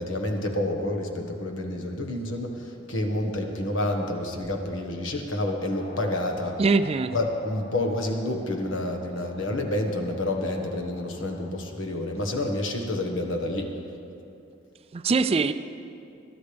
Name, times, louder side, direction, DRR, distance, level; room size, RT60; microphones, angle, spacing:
voice 1, 0.0-6.8 7.1-13.7, left 1 dB, 75° left, 3 dB, 1.5 m, -29 dB
sound 1, 5.8-11.5, left 1 dB, 45° left, 1.4 m, -46 dB
voice 2, 6.6-7.1 14.9-15.5, right 4 dB, 30° right, 11 dB, 0.3 m, -22 dB
21.5 x 12.0 x 3.5 m, 2.6 s
head